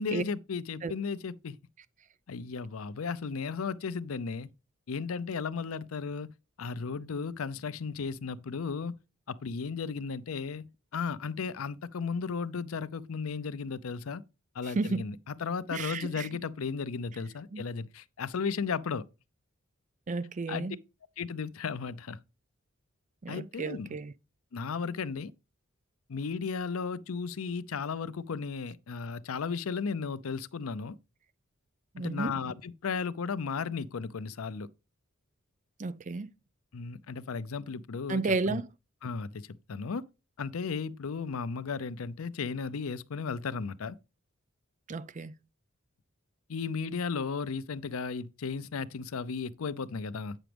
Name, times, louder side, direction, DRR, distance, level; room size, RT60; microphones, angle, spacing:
voice 1, 0.0-1.6 2.3-4.5 4.9-6.3 6.6-9.0 9.3-14.2 14.5-19.0 20.5-20.7 21.2-22.2 23.3-23.9 24.5-25.3 26.1-31.0 32.0-34.7 36.7-38.6 39.0-40.0 40.4-44.0 46.5-50.4, left 5 dB, 85° left, 0.5 m, -35 dB
voice 2, 15.7-16.3 17.5-17.6 20.1-20.8 23.2-24.1 31.9-32.4 35.8-36.3 38.1-38.7 44.9-45.3, right 3 dB, 35° right, 0.4 m, -32 dB
9.0 x 6.0 x 3.4 m
head